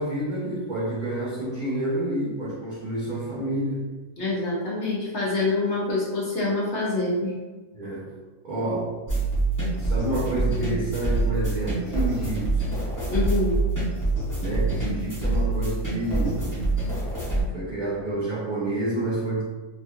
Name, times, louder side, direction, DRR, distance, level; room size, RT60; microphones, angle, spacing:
voice 1, 0.0-3.9 7.7-8.1 8.4-8.9 9.7-12.7 14.4-16.6 17.5-19.4, right 1 dB, 70° right, -8 dB, 0.4 m, -29 dB
voice 2, 4.2-7.3 13.1-13.5, left 2 dB, 55° left, -5 dB, 0.8 m, -26 dB
sound 1, 9.1-17.4, right 2 dB, 15° left, 0.7 m, -26 dB
3.0 x 2.4 x 2.8 m, 1.3 s
omnidirectional pair, 1.7 m